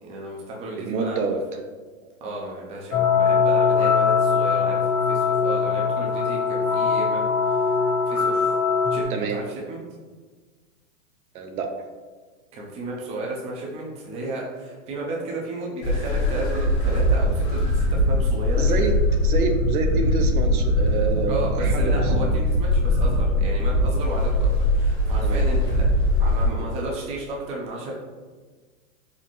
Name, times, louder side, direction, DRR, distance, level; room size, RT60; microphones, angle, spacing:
voice 1, 0.0-1.4 2.2-7.7 8.1-8.6 8.9-9.8 12.5-18.8 21.3-25.9 26.2-27.9, right 1 dB, 15° right, -3 dB, 0.5 m, -33 dB
voice 2, 0.8-1.4 9.1-9.4 11.3-11.7 18.6-18.9 19.2-22.0 25.2-25.5, right 4 dB, 90° right, 5 dB, 0.7 m, -27 dB
sound 1, 2.9-9.0, left 5 dB, 75° left, 1.3 m, -21 dB
sound 2, 15.8-26.5, left 1 dB, 40° left, 1.0 m, -21 dB
4.2 x 2.9 x 3.0 m, 1.4 s
hypercardioid pair, 140°, 43 cm